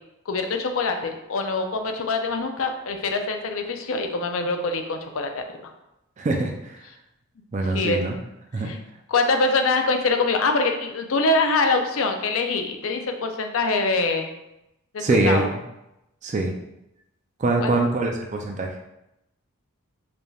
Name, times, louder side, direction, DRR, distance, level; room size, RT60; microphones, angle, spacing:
voice 1, 0.3-5.7 7.7-8.0 8.6-8.8 9.1-14.3 14.9-15.5 17.6-17.7, left 3 dB, 65° left, 5 dB, 0.5 m, -24 dB
voice 2, 6.2-6.8 7.5-8.2 8.5-8.7 15.0-15.4 16.2-16.5 17.4-18.7, right 2 dB, 30° right, 2 dB, 0.4 m, -23 dB
4.9 x 3.2 x 2.3 m, 0.89 s
head